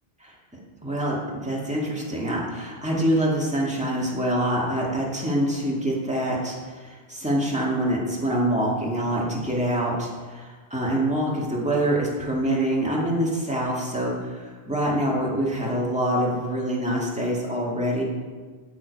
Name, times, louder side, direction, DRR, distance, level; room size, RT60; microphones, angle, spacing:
voice 1, 0.8-18.0, right 1 dB, 5° right, -4 dB, 1.9 m, -25 dB
13.0 x 4.9 x 5.3 m, 1.5 s
omnidirectional pair, 1.1 m